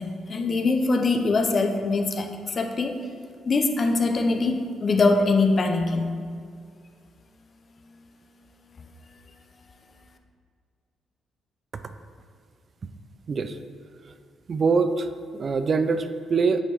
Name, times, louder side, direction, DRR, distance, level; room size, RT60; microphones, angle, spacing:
voice 1, 0.0-3.0 3.5-6.1, left 3 dB, 40° left, 5 dB, 0.6 m, -23 dB
voice 2, 13.3-13.6 14.0-14.1 14.5-16.6, right 4 dB, 45° right, 10 dB, 0.3 m, -24 dB
8.7 x 3.0 x 4.5 m, 2.2 s
cardioid pair, 90°, 0 cm